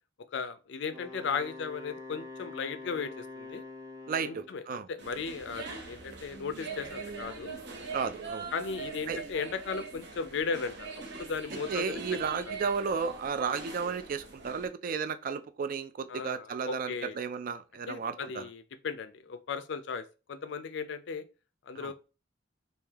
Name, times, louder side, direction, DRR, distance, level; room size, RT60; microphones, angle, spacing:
voice 1, 0.3-3.6 4.2-7.5 8.5-12.0 16.1-17.2 17.9-21.2 21.7-21.9, left 5 dB, 65° left, 0.4 m, -36 dB
Wind instrument woodwind instrument, 0.8-4.6, left 3 dB, 15° right, 0.9 m, -45 dB
voice 2, 4.1-4.9 7.9-8.5 9.1-9.2 11.7-18.5 21.8-21.9, right 6 dB, 45° right, 0.3 m, -33 dB
sound 1, 5.0-14.7, right 4 dB, 60° right, 0.8 m, -42 dB
3.3 x 2.7 x 3.4 m
head